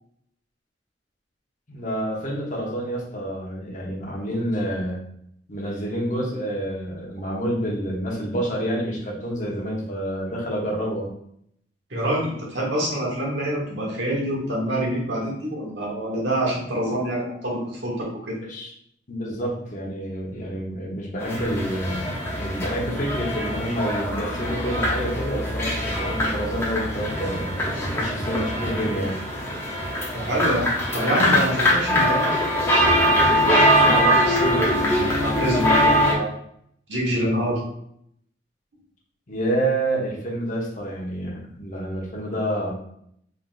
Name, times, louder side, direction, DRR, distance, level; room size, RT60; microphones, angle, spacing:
voice 1, 1.7-5.0 5.5-11.1 18.3-18.7 19.1-22.1 22.4-27.5 27.9-29.2 39.3-42.7, right 1 dB, 45° left, -3 dB, 1.0 m, -28 dB
voice 2, 11.9-18.4 30.1-36.3 36.9-37.6, right 1 dB, 80° right, -3 dB, 1.4 m, -26 dB
sound 1, 21.2-36.1, equal, 15° left, 0.8 m, -22 dB
3.8 x 3.6 x 2.6 m, 0.70 s
head